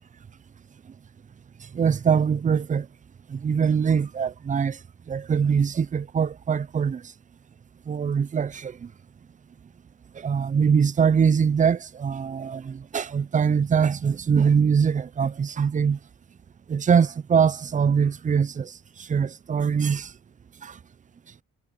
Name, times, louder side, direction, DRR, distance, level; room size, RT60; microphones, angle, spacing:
voice 1, 1.7-2.9 3.3-4.8 5.1-7.1 7.9-8.9 10.1-16.0 16.7-20.1 20.6-20.8, right 6 dB, 25° right, 0.4 m, -23 dB
cardioid pair, 90°, 30 cm